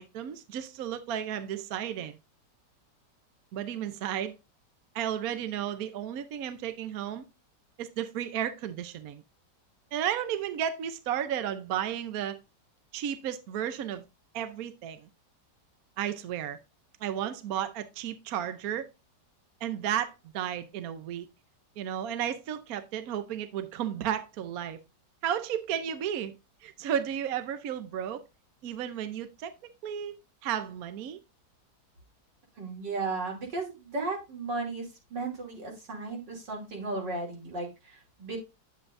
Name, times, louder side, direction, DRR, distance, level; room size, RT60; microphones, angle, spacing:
voice 1, 0.0-2.2 3.5-4.4 4.9-7.2 7.8-9.2 9.9-12.4 12.9-14.0 14.3-15.1 16.0-16.6 17.0-18.9 19.6-21.3 21.8-24.8 25.2-26.3 26.6-28.2 28.6-29.5 29.8-31.2, right 10 dB, 65° right, 1.1 m, -33 dB
voice 2, 32.6-38.4, right 3 dB, 85° right, 3.5 m, -35 dB
9.8 x 7.9 x 2.6 m
omnidirectional pair, 1.9 m